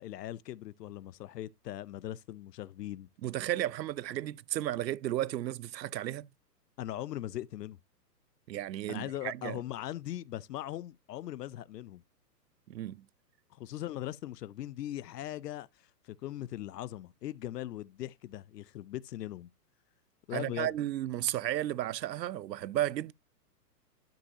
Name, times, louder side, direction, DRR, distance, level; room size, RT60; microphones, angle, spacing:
voice 1, 0.0-3.1 6.8-7.8 8.9-12.0 13.5-15.7 16.0-19.5 20.3-20.7, left 13 dB, 75° left, 0.6 m, -40 dB
voice 2, 3.2-6.3 8.5-9.6 12.7-13.1 20.3-23.1, right 13 dB, 90° right, 0.6 m, -33 dB
11.5 x 5.4 x 2.8 m
hypercardioid pair, 150°, 49 cm